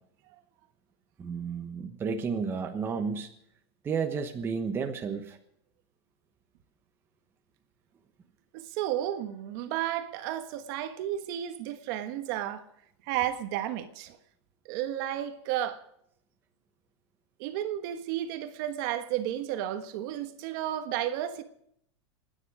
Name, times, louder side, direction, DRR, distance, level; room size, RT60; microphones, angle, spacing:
voice 1, 1.2-3.3 3.8-5.4, right 5 dB, 15° right, 1.1 m, -32 dB
voice 2, 8.5-12.6 13.1-14.2 14.6-15.8 17.4-21.4, right 12 dB, 45° right, 1.4 m, -32 dB
27.0 x 10.0 x 4.9 m
supercardioid pair, 160°, 15 cm